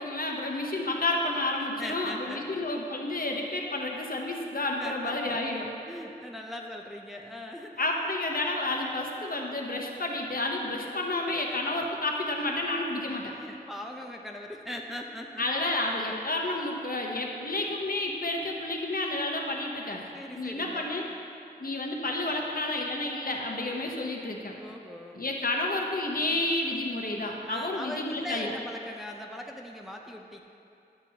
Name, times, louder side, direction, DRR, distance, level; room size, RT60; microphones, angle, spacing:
voice 1, 0.0-5.7 7.8-13.3 15.4-20.1 20.4-21.1 21.6-24.5 25.1-28.5, left 2 dB, 55° left, 0 dB, 0.9 m, -30 dB
voice 2, 1.8-2.7 4.8-5.4 5.8-7.8 13.3-15.4 20.1-21.0 24.6-25.2 27.4-30.4, left 1 dB, ahead, 1 dB, 0.6 m, -40 dB
11.0 x 6.8 x 2.8 m, 2.7 s
wide cardioid pair, 60°, 17 cm